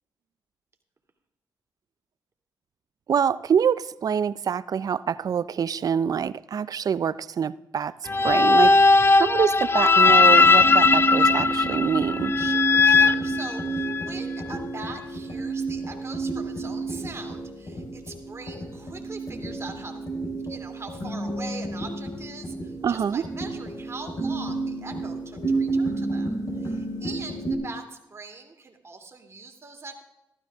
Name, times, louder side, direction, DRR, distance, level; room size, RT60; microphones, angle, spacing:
voice 1, 3.1-7.9 8.2-8.8 9.2-12.3 22.8-23.2, right 7 dB, 55° right, 0.5 m, -25 dB
sound 1, 8.1-14.1, left 4 dB, 30° left, 0.5 m, -18 dB
voice 2, 8.7-9.2 12.4-20.0 20.5-30.0, right 3 dB, 35° right, 2.5 m, -42 dB
sound 2, 10.0-27.5, right 3 dB, 55° left, 4.1 m, -30 dB
15.0 x 12.5 x 3.6 m
cardioid pair, 70°, 7 cm